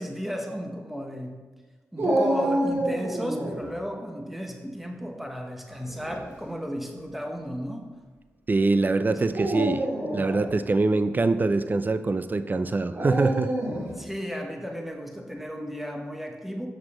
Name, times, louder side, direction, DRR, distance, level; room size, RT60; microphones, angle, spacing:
voice 1, 0.0-1.3 1.9-7.8 9.1-9.3 13.9-16.7, equal, 5° right, 2 dB, 1.2 m, -34 dB
Dog, 2.0-3.6 5.7-6.2 7.0-7.1 9.2-10.5 12.9-13.9, right 1 dB, 55° right, 2.5 m, -27 dB
voice 2, 8.5-9.9 10.1-13.5, right 3 dB, 35° right, 11 dB, 0.5 m, -24 dB
7.5 x 6.1 x 4.3 m, 1.3 s
supercardioid pair, 45°, 5 cm